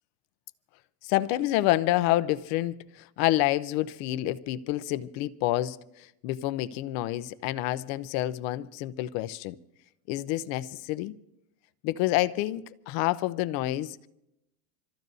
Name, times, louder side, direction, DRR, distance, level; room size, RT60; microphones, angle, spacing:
voice 1, 1.0-9.6 10.1-11.1 11.8-14.1, left 15 dB, 35° left, 0.6 m, -28 dB
27.5 x 14.0 x 2.7 m
supercardioid pair, 135°, 47 cm